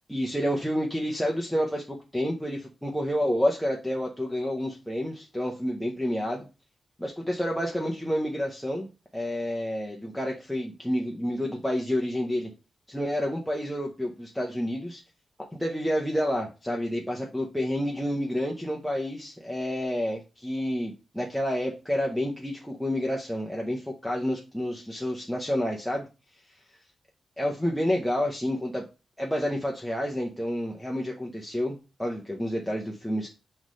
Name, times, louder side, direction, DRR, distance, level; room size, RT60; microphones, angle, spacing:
voice 1, 0.1-1.8 2.1-6.5 7.0-12.5 12.9-15.0 15.6-26.1 27.4-28.8 29.2-33.3, equal, ahead, -1 dB, 0.8 m, -29 dB
5.9 x 3.2 x 5.2 m, 0.30 s
wide cardioid pair, 160°, 0 cm